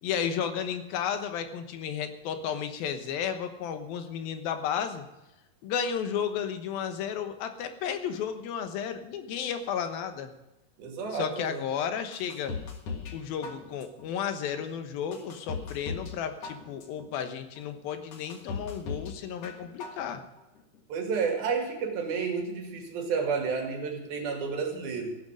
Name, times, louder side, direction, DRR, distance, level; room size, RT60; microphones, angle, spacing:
voice 1, 0.0-5.1 5.6-10.3 11.1-12.6 13.1-20.2, left 8 dB, 85° left, 8 dB, 3.0 m, -33 dB
voice 2, 10.8-11.6 20.9-25.2, right 5 dB, 85° right, 3 dB, 4.1 m, -31 dB
sound 1, 12.1-13.2 13.4-14.1 14.6-14.7 15.1-16.2 16.4-17.1 17.6-17.7 18.1-19.1 19.4-20.1 20.4-20.5, left 5 dB, 50° left, 2.3 m, -37 dB
15.5 x 10.5 x 6.3 m, 0.95 s
omnidirectional pair, 4.2 m